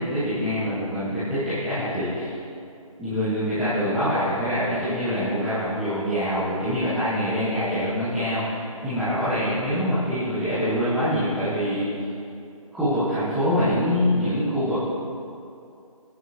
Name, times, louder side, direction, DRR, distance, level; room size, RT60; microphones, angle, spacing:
voice 1, 0.0-2.3 3.0-11.9 12.7-14.8, equal, ahead, -16 dB, 1.5 m, -25 dB
24.5 x 10.0 x 3.0 m, 2.5 s
figure-of-eight pair, 155°, 18 cm